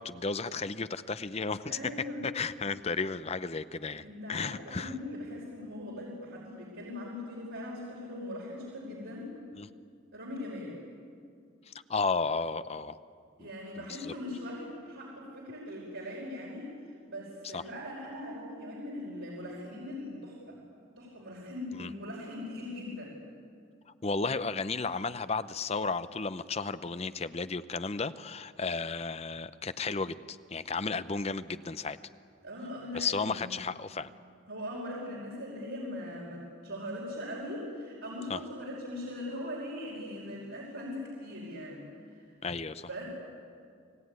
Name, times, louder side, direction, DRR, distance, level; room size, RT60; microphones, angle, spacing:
voice 1, 0.0-1.8 2.3-5.0 9.5-9.7 11.7-13.0 13.4-13.5 13.7-14.1 17.5-17.6 21.8-21.9 24.0-32.0 32.9-34.1 38.3-38.4 42.4-42.9, left 4 dB, 30° left, 13 dB, 0.7 m, -33 dB
voice 2, 1.6-2.3 4.0-9.3 10.1-10.8 13.4-16.7 17.1-20.6 21.0-23.2 32.4-33.5 34.5-42.3 42.9-43.0, left 1 dB, 90° right, -4 dB, 5.3 m, -40 dB
29.5 x 18.5 x 9.7 m, 2.3 s
head